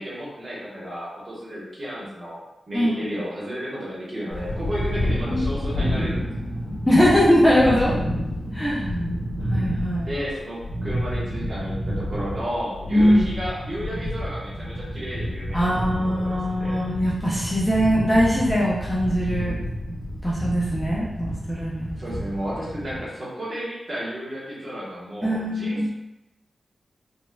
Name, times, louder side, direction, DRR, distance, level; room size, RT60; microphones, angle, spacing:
voice 1, 0.0-2.4 2.7-6.2 10.1-16.8 22.0-25.9, equal, 35° right, -7 dB, 1.1 m, -33 dB
sound 1, 4.3-23.0, equal, 75° left, 1.4 m, -29 dB
voice 2, 6.9-7.9 8.5-8.9 9.5-10.1 12.9-13.3 15.5-19.6 20.2-22.2 25.2-25.9, equal, 5° left, -7 dB, 0.5 m, -21 dB
3.9 x 2.6 x 2.3 m, 0.96 s
wide cardioid pair, 180°, 0 cm